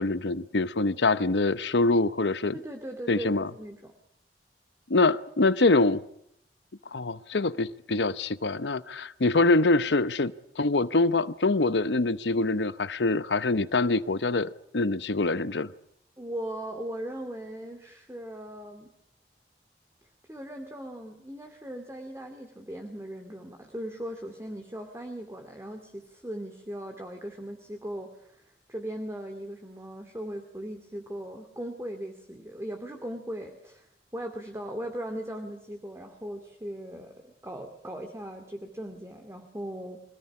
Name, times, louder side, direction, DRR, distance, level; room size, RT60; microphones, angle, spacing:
voice 1, 0.0-2.6 3.1-3.5 4.9-6.0 6.9-15.7, left 2 dB, 85° left, 15 dB, 0.9 m, -25 dB
voice 2, 2.5-3.9 16.2-18.9 20.3-33.9 34.1-40.0, right 1 dB, 15° right, 4 dB, 2.3 m, -38 dB
26.0 x 18.5 x 9.8 m, 0.73 s
head